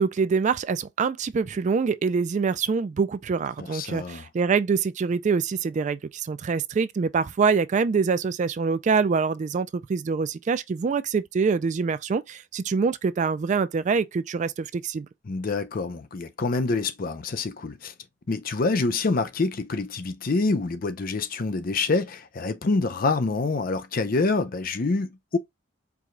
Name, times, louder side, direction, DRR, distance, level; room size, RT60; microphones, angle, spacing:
voice 1, 0.0-15.1, right 5 dB, 40° right, 0.3 m, -25 dB
voice 2, 3.6-4.3 15.3-17.9 18.3-25.4, left 3 dB, 50° left, 0.6 m, -26 dB
4.7 x 2.3 x 3.7 m
head